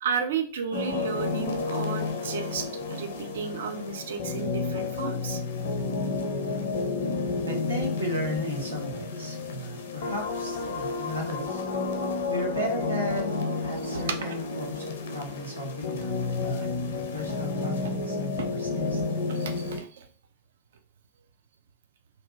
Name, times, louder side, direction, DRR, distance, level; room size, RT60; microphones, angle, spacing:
voice 1, 0.0-5.4 13.9-14.0 19.3-20.1, right 6 dB, 60° right, 6 dB, 0.4 m, -33 dB
sound 1, 0.7-19.8, left 3 dB, 60° left, 0.5 m, -31 dB
voice 2, 7.5-11.6 12.3-19.0, equal, 85° right, -1 dB, 0.8 m, -35 dB
2.7 x 2.3 x 2.6 m, 0.42 s
figure-of-eight pair, 90°, 0 cm